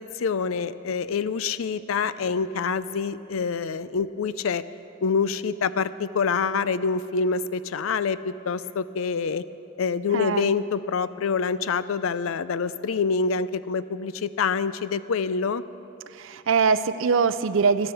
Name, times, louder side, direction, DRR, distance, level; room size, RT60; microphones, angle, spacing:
voice 1, 0.0-4.6 5.0-9.4 9.8-15.6, left 5 dB, 75° left, 15 dB, 0.4 m, -26 dB
voice 2, 10.1-10.5 16.2-17.9, right 5 dB, 65° right, 13 dB, 0.5 m, -22 dB
14.0 x 11.5 x 6.9 m, 2.9 s
head